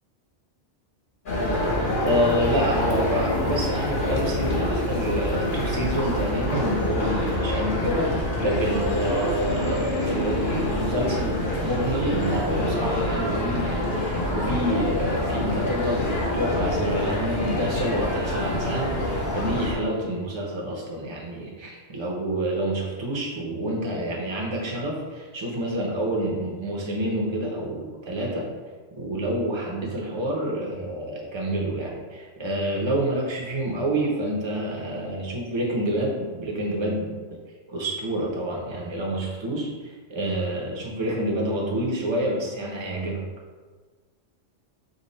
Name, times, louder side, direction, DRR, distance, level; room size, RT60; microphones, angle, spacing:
sound 1, 1.3-19.7, left 1 dB, 50° left, 1.0 m, -26 dB
voice 1, 2.0-28.5 29.0-37.4 37.7-43.2, right 1 dB, 25° right, -2 dB, 0.8 m, -28 dB
5.2 x 2.3 x 4.1 m, 1.4 s
omnidirectional pair, 1.2 m